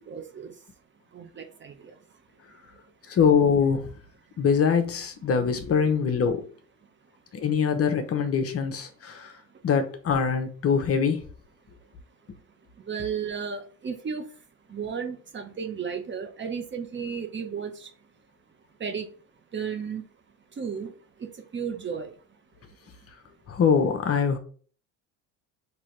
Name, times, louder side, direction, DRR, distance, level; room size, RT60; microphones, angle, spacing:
voice 1, 0.1-0.5 1.1-1.9 12.9-14.3 14.7-17.9 18.8-19.1 19.5-20.0 20.6-20.9 21.2-22.1, right 6 dB, 30° right, 7 dB, 0.9 m, -33 dB
voice 2, 3.1-3.9 4.4-6.4 7.3-9.4 9.6-11.3 23.5-24.4, left 6 dB, 40° left, 6 dB, 0.9 m, -23 dB
5.8 x 2.9 x 3.2 m, 0.42 s
supercardioid pair, 100°, 38 cm